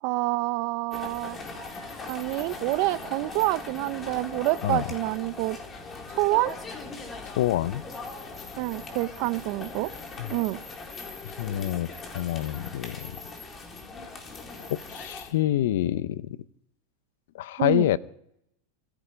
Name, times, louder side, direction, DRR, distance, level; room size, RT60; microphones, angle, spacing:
voice 1, 0.0-1.4 2.1-5.6 6.1-6.5 8.6-9.9 10.3-10.6 17.6-17.9, right 21 dB, 55° right, 0.7 m, -27 dB
sound 1, 0.9-15.3, left 3 dB, 25° left, 4.1 m, -40 dB
voice 2, 7.2-7.8 10.2-10.3 11.4-13.1 14.7-16.4 17.3-18.0, left 13 dB, 70° left, 0.8 m, -27 dB
27.0 x 10.0 x 5.2 m
hypercardioid pair, 115°, 0 cm